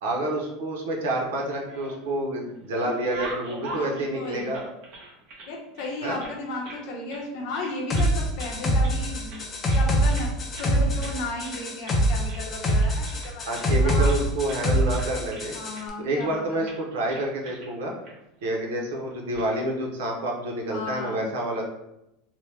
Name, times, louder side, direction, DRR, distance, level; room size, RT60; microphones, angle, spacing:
voice 1, 0.0-4.7 6.0-6.2 13.5-15.5 16.0-17.9 18.4-21.6, right 1 dB, 90° right, 0 dB, 0.7 m, -28 dB
sound 1, 1.4-2.2 2.6-5.5 5.8-6.8 7.1-7.3 7.5-8.1 8.4-9.0 9.3-10.3 10.6-10.7 11.0-11.2 11.4-12.0 12.3-14.2 14.5-14.6 14.9-15.8 16.2-16.4 16.6-16.8 17.1-17.7 18.0-18.1 19.1-19.4, right 2 dB, 50° right, 1.0 m, -41 dB
voice 2, 3.7-4.6 5.5-14.1 15.5-16.7 20.7-21.3, left 2 dB, 50° left, 0 dB, 0.8 m, -35 dB
sound 2, 7.9-15.8, right 1 dB, 20° left, 0.4 m, -24 dB
2.9 x 2.1 x 3.2 m, 0.87 s
supercardioid pair, 160°, 0 cm